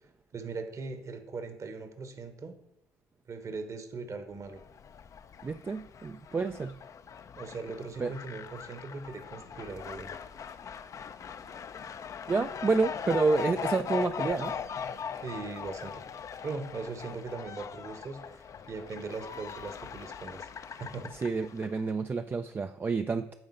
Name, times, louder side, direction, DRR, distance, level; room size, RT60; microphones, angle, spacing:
voice 1, 0.3-2.5 3.3-4.6 7.4-10.1 11.4-11.5 11.9-12.0 15.2-16.0 16.4-21.1, right 4 dB, 45° right, 9 dB, 1.1 m, -40 dB
Fowl, 4.5-21.8, left 7 dB, 45° left, 0.5 m, -40 dB
voice 2, 5.4-6.8 8.0-8.1 12.3-14.6 21.1-23.3, right 4 dB, 30° right, 8 dB, 0.4 m, -29 dB
8.9 x 3.8 x 5.5 m, 0.86 s
hypercardioid pair, 55°, 8 cm